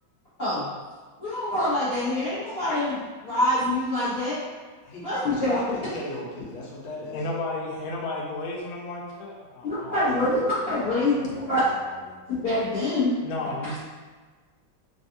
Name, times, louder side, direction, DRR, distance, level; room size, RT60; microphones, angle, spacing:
voice 1, 1.2-4.4 5.0-5.6 9.6-11.6 12.4-13.1, left 1 dB, 45° left, -13 dB, 0.8 m, -25 dB
voice 2, 4.8-7.2 10.2-10.4 11.1-12.2, left 1 dB, 90° left, -3 dB, 1.5 m, -37 dB
voice 3, 7.1-10.2 13.2-13.8, left 2 dB, 75° left, -1 dB, 0.9 m, -33 dB
3.5 x 2.3 x 2.6 m, 1.4 s
omnidirectional pair, 2.1 m